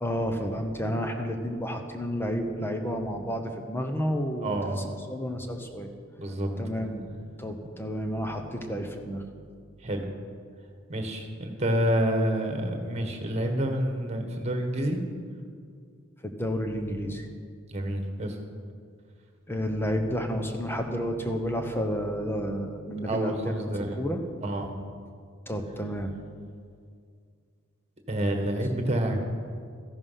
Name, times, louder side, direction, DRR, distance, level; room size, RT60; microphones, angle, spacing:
voice 1, 0.0-4.6 5.1-5.9 6.6-7.1 7.4-9.2 16.2-17.3 19.5-23.5 24.0-24.2 25.5-26.1, equal, 10° left, 5 dB, 0.9 m, -30 dB
voice 2, 4.4-4.8 6.2-6.5 9.8-10.0 10.9-15.0 17.7-18.4 23.0-24.0 24.4-24.7 28.1-29.2, right 1 dB, 30° right, 4 dB, 1.5 m, -28 dB
14.0 x 10.5 x 5.8 m, 2.2 s
head